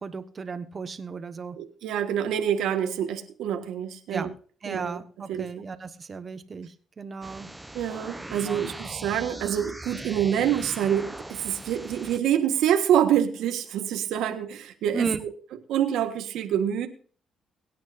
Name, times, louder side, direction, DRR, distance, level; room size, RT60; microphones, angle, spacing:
voice 1, 0.0-1.6 4.1-4.3 4.6-7.5 8.5-8.6 14.9-15.2, right 5 dB, 40° right, 10 dB, 1.4 m, -34 dB
voice 2, 1.6-4.3 4.7-5.0 5.3-5.5 7.7-15.1 15.7-16.9, right 9 dB, 85° right, 6 dB, 1.5 m, -26 dB
sound 1, 7.2-12.2, right 1 dB, 10° right, 0.9 m, -40 dB
23.0 x 9.4 x 2.7 m, 0.42 s
cardioid pair, 90°, 0 cm